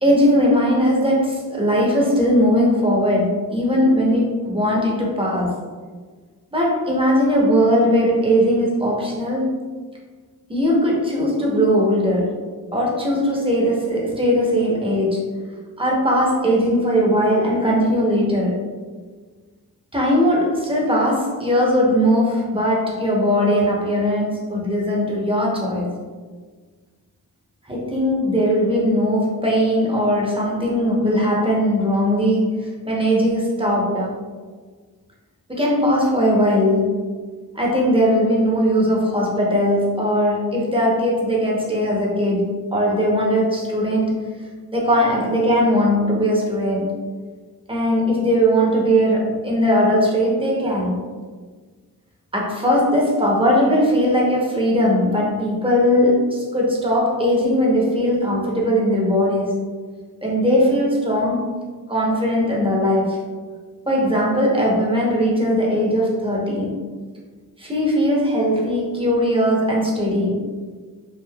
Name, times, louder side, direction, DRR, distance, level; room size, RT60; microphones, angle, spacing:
voice 1, 0.0-5.5 6.5-9.7 10.5-12.4 12.7-15.4 15.8-18.6 19.9-25.9 27.7-34.1 35.5-37.1 37.5-44.3 44.7-47.0 47.7-51.0 52.3-59.5 60.2-61.4 61.9-63.3 63.9-66.7 67.6-70.4, equal, 15° right, -3 dB, 0.9 m, -19 dB
3.6 x 2.5 x 2.3 m, 1.5 s
cardioid pair, 40°, 37 cm